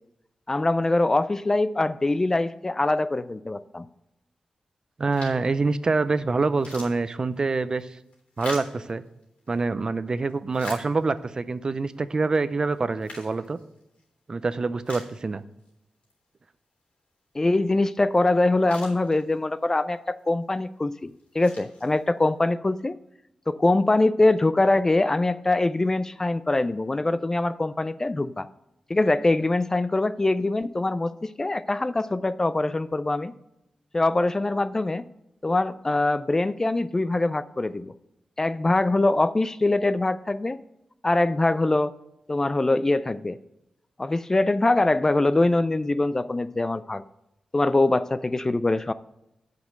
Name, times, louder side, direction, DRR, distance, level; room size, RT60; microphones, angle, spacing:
voice 1, 0.5-3.9 17.3-23.0 23.5-28.5 28.9-33.3 33.9-35.1 35.4-37.9 38.4-40.6 41.0-41.9 42.3-43.4 44.0-47.0 47.5-48.9, left 2 dB, 25° left, 14 dB, 0.3 m, -23 dB
voice 2, 5.0-8.0 8.4-9.0 9.5-13.6 14.3-15.4, right 3 dB, 40° right, 14 dB, 0.5 m, -26 dB
sound 1, 5.1-5.6 6.0-6.1 6.4-9.6 10.1-11.4 11.9-12.0 12.7-14.1 14.5-14.6 14.8-15.7 16.0-16.1 18.1-18.2 18.4-19.6 20.2-20.5 21.1-22.3, left 2 dB, 80° left, 3.3 m, -44 dB
8.1 x 5.2 x 7.4 m, 0.88 s
wide cardioid pair, 105°, 2 cm